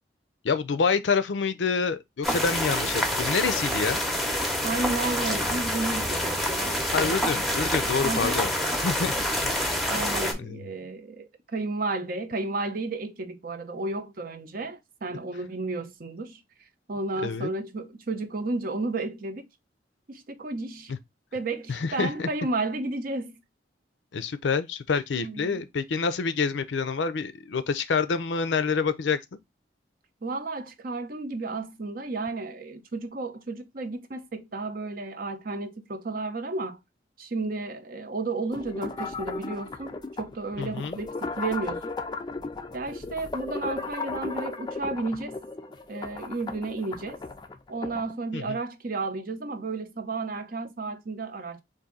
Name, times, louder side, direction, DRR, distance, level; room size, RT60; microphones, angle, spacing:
voice 1, 0.4-4.0 6.9-8.5 8.8-9.1 9.4-9.5 10.4-10.6 17.2-17.5 20.9-21.0 21.7-22.3 24.1-29.2 40.6-41.0 48.3-48.6, left 5 dB, 85° left, 0.5 m, -27 dB
sound 1, 2.2-10.3, equal, ahead, 0.7 m, -27 dB
voice 2, 4.6-7.2 8.0-8.4 9.9-16.4 16.9-19.5 20.1-20.9 21.3-23.4 25.2-25.6 30.2-36.8 37.2-41.8 42.7-45.4 45.9-47.2 47.7-51.6, right 3 dB, 50° right, 0.6 m, -32 dB
sound 2, 38.5-48.1, left 3 dB, 25° left, 0.3 m, -36 dB
4.0 x 2.6 x 3.7 m
head